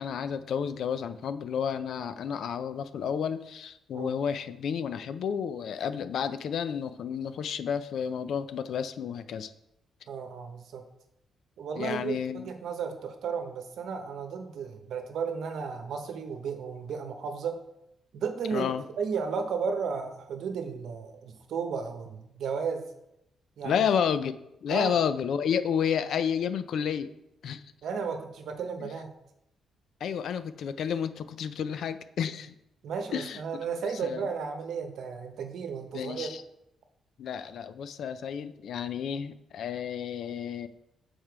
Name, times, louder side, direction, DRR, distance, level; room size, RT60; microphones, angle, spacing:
voice 1, 0.0-9.5 11.8-12.5 18.5-18.8 23.6-24.3 24.6-27.1 27.4-27.6 28.8-28.9 30.0-32.5 33.1-33.6 34.0-34.3 35.9-36.4 37.2-40.7, left 7 dB, 70° left, 12 dB, 0.4 m, -31 dB
voice 2, 10.1-10.8 11.6-17.6 18.1-18.7 19.0-22.8 23.6-23.8 24.7-24.9 27.8-29.1 32.8-36.3, right 6 dB, 70° right, 6 dB, 0.9 m, -34 dB
6.7 x 4.4 x 4.6 m, 0.83 s
cardioid pair, 100°, 0 cm